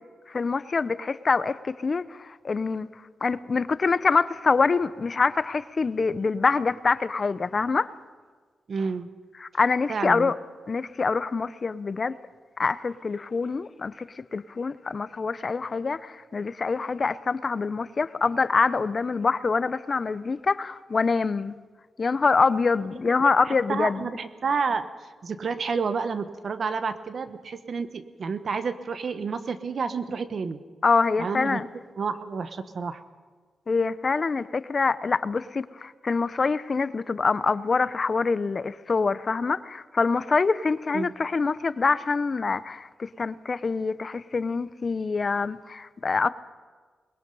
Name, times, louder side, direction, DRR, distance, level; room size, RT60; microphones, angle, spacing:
voice 1, 0.3-2.9 3.2-7.9 9.4-10.4 10.7-12.1 12.6-14.0 14.3-21.6 22.0-24.1 30.8-31.7 33.7-46.3, left 4 dB, 40° left, 0.6 m, -25 dB
voice 2, 8.7-9.1 9.9-10.3 23.2-24.9 25.2-30.6 31.2-31.6 32.0-33.0 40.9-41.1, right 5 dB, 55° right, 1.1 m, -30 dB
23.0 x 21.0 x 5.4 m
cardioid pair, 95°, 0 cm